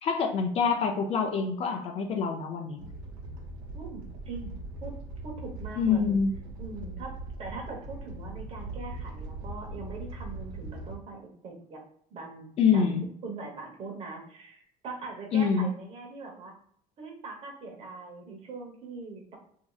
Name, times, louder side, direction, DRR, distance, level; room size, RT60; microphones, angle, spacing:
voice 1, 0.0-2.9 5.8-6.3 12.6-13.0 15.3-15.7, left 6 dB, 40° left, 4 dB, 0.4 m, -26 dB
Animal, 2.8-10.9, right 2 dB, 80° right, 1.0 m, -40 dB
voice 2, 3.7-4.5 4.8-4.9 5.2-6.1 6.6-7.1 7.4-11.8 12.1-12.5 12.7-12.8 13.2-16.5 17.0-19.4, right 3 dB, 40° right, 1 dB, 1.0 m, -41 dB
4.2 x 2.8 x 2.3 m, 0.63 s
cardioid pair, 155°, 16 cm